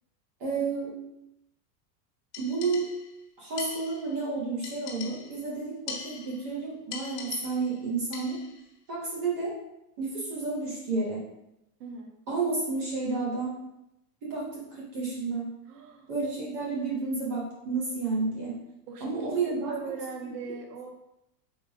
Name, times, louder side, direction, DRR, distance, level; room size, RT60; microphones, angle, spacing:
voice 1, 0.4-0.9 2.4-2.9 3.4-8.4 8.9-9.6 10.0-11.2 12.3-13.5 14.2-15.5 16.1-18.6 19.0-19.8 20.4-20.5, right 3 dB, 15° right, -5 dB, 0.3 m, -31 dB
sound 1, 2.3-3.2 3.6-4.2 4.6-5.5 5.9-6.5 6.9-7.8 8.1-8.6, left 6 dB, 75° left, 1.9 m, -42 dB
voice 2, 11.8-12.1 15.7-16.1 18.9-20.9, right 5 dB, 70° right, 2 dB, 1.5 m, -39 dB
8.5 x 4.7 x 2.5 m, 0.86 s
supercardioid pair, 170°, 48 cm